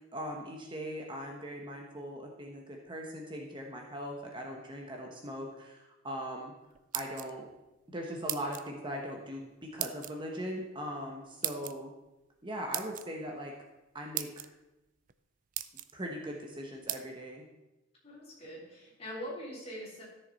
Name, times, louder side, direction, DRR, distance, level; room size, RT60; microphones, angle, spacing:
voice 1, 0.1-6.5 6.9-7.5 7.9-11.9 12.4-13.5 13.9-14.5 15.9-17.5, equal, 25° right, 0 dB, 1.1 m, -40 dB
sound 1, 6.7-7.6 8.3-8.7 9.8-10.1 11.4-11.7 12.7-13.1 13.8-13.9 14.1-14.5 15.1-15.2 15.5-15.9 16.9-17.0, right 13 dB, 45° right, 0.4 m, -36 dB
voice 2, 18.0-20.0, equal, 30° left, -6 dB, 3.8 m, -43 dB
14.0 x 6.7 x 4.1 m, 0.98 s
head